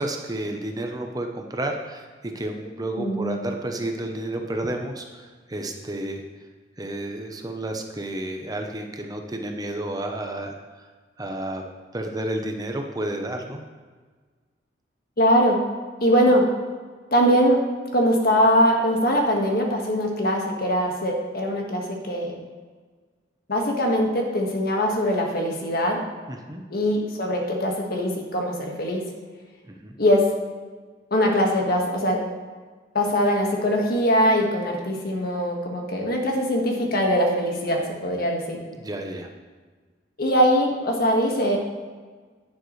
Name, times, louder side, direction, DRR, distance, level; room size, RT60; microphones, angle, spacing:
voice 1, 0.0-6.2 6.8-10.5 11.2-11.6 11.9-13.6 26.3-26.6 29.7-29.9 38.8-39.3, right 1 dB, 20° right, 3 dB, 0.8 m, -31 dB
voice 2, 3.0-3.4 15.2-15.6 16.0-16.5 17.1-17.6 17.9-22.4 23.5-26.0 26.7-29.1 30.0-30.3 31.1-32.2 32.9-38.6 40.2-41.6, equal, 55° left, 1 dB, 1.6 m, -22 dB
10.5 x 9.4 x 3.2 m, 1.5 s
head